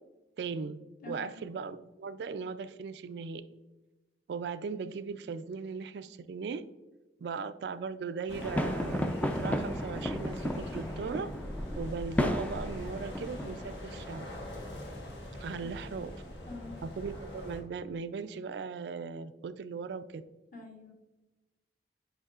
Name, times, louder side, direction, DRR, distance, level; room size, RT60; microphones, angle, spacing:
voice 1, 0.4-0.8 1.1-3.4 4.3-6.6 7.2-11.3 11.8-14.3 15.4-16.1 16.8-20.2, right 5 dB, 65° right, 12 dB, 0.3 m, -38 dB
voice 2, 1.0-1.4 15.6-16.0 16.4-16.8 20.5-20.9, left 3 dB, 50° left, 1 dB, 1.2 m, -46 dB
sound 1, 8.3-17.6, left 1 dB, 75° left, 1.3 m, -41 dB
sound 2, 8.4-13.8, left 1 dB, 10° left, 0.4 m, -34 dB
9.0 x 5.0 x 2.4 m, 1.1 s
head